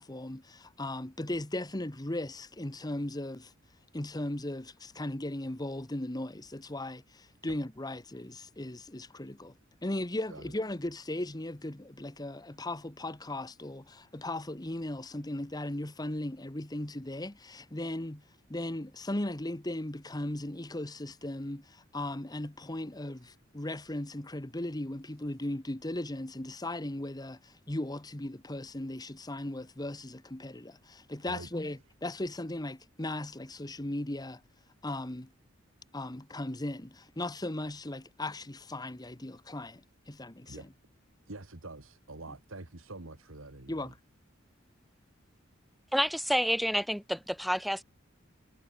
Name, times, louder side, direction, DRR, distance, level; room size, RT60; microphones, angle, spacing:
voice 1, 0.0-3.5 3.9-9.6 9.8-18.2 18.5-34.4 34.8-35.3 35.9-39.8 40.1-40.6 43.7-43.9, left 1 dB, 20° left, 1.3 m, -37 dB
voice 2, 41.3-43.9, right 2 dB, 85° right, 2.5 m, -46 dB
voice 3, 45.9-47.8, equal, ahead, 1.2 m, -29 dB
head